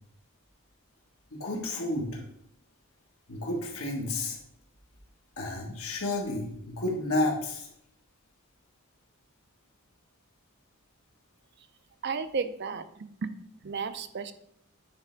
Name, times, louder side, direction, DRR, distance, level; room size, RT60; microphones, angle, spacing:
voice 1, 1.3-2.2 3.3-4.4 5.4-7.7, left 2 dB, 80° left, 0 dB, 1.7 m, -31 dB
voice 2, 12.0-13.3 13.6-14.3, right 5 dB, 50° right, 11 dB, 0.5 m, -33 dB
9.4 x 3.4 x 4.5 m, 0.72 s
head